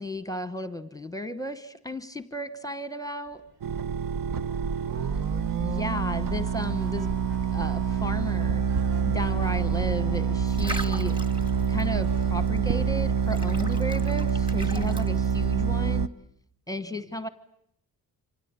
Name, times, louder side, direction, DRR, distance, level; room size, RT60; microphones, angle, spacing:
voice 1, 0.0-3.4 5.6-7.1 7.5-8.6 9.1-11.2 11.7-16.1 16.7-17.3, left 1 dB, 10° left, 12 dB, 1.1 m, -34 dB
sound 1, 3.3-13.0, right 4 dB, 80° right, 3.1 m, -51 dB
sound 2, 3.6-16.1, right 7 dB, 60° right, 1.1 m, -26 dB
voice 2, 3.7-5.3 16.7-17.2, right 1 dB, 35° right, -2 dB, 7.9 m, -56 dB
sound 3, 4.0-15.7, right 1 dB, 15° right, 1.7 m, -44 dB
27.5 x 25.5 x 8.2 m, 0.73 s
wide cardioid pair, 170°, 37 cm